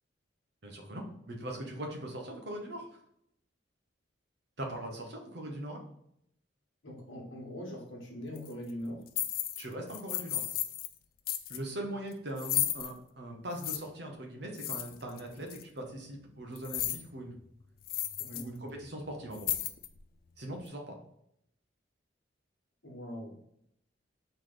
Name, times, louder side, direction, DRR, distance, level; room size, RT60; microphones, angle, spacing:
voice 1, 0.6-2.9 4.6-5.8 9.6-10.4 11.5-17.3 18.3-19.5 20.4-21.0, right 1 dB, 60° right, 1 dB, 1.0 m, -40 dB
voice 2, 6.8-9.0 18.2-18.5 22.8-23.4, equal, 85° left, -1 dB, 1.4 m, -41 dB
sound 1, 8.4-8.5 9.1-9.6 9.9-10.9 11.3-11.6 12.4-12.9 13.6-13.8 14.6-15.2 15.5-15.6 16.6-17.1 17.4-17.5 17.8-18.4 18.8-18.9 19.3-20.0, left 12 dB, 50° left, 0.3 m, -34 dB
4.0 x 3.3 x 3.9 m, 0.74 s
head